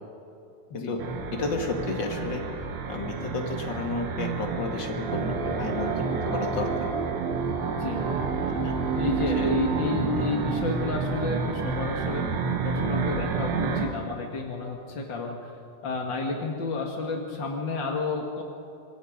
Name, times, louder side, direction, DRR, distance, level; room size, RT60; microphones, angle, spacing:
sound 1, 1.0-13.9, right 5 dB, 85° right, 4.2 m, -29 dB
voice 1, 1.3-2.4 2.9-6.7 8.5-8.7 9.3-9.4 10.2-10.7, left 3 dB, 40° left, 3 dB, 1.7 m, -32 dB
voice 2, 7.7-8.1 8.9-15.5 15.8-18.4, left 3 dB, 60° left, 1 dB, 1.2 m, -31 dB
26.5 x 23.0 x 5.2 m, 2.8 s
omnidirectional pair, 5.0 m